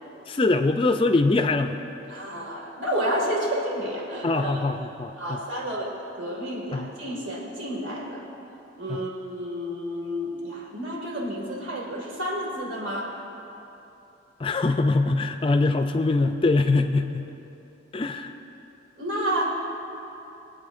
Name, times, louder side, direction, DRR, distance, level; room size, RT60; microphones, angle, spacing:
voice 1, 0.3-1.8 4.2-5.4 6.7-6.9 8.9-9.0 14.4-17.3 17.9-18.3, left 3 dB, 25° left, 7 dB, 0.3 m, -23 dB
voice 2, 2.1-4.7 5.2-8.2 8.8-13.1 19.0-19.4, equal, 70° right, -2 dB, 2.2 m, -30 dB
22.5 x 8.7 x 2.6 m, 3.0 s
head